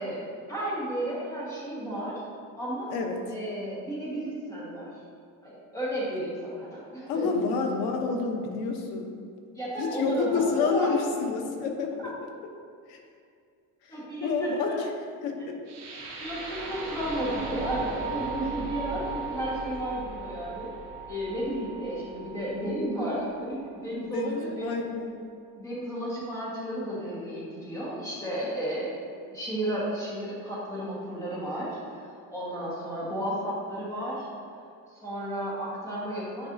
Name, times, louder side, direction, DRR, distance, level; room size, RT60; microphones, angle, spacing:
voice 1, 0.0-2.2 2.6-2.9 3.2-4.9 5.4-7.3 9.5-10.9 13.9-14.7 16.2-20.7 21.1-24.7 25.5-29.0 29.3-34.3 34.9-36.5, right 1 dB, 10° left, -8 dB, 1.6 m, -33 dB
voice 2, 7.1-9.1 9.8-12.1 12.9-13.0 13.8-14.9 15.2-15.5 24.0-25.1, left 4 dB, 80° left, 3 dB, 1.0 m, -29 dB
sound 1, 15.7-23.7, right 4 dB, 45° right, 1.6 m, -37 dB
9.5 x 4.7 x 2.7 m, 2.3 s
cardioid pair, 180°, 37 cm